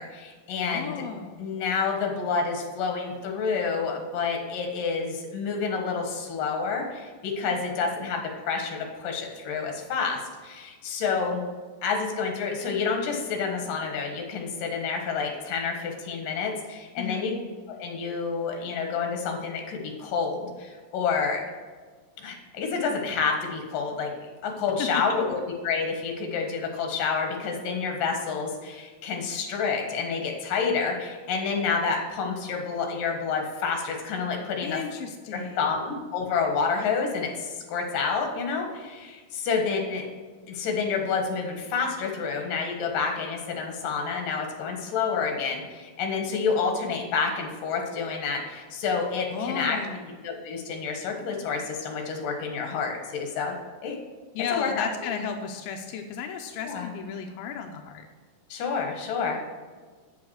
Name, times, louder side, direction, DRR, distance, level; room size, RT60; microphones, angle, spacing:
voice 1, 0.0-1.0 1.4-11.4 11.8-17.3 17.8-21.4 22.2-34.8 35.3-40.1 40.5-49.8 50.2-53.6 53.8-54.0 54.5-54.9 56.6-56.9 58.5-59.4, left 5 dB, 60° left, 2 dB, 2.8 m, -29 dB
voice 2, 0.6-1.5 17.0-17.4 24.8-25.0 34.6-35.8 49.3-50.1 54.3-58.1, left 6 dB, 80° left, 4 dB, 2.1 m, -34 dB
8.4 x 7.2 x 6.4 m, 1.4 s
omnidirectional pair, 5.0 m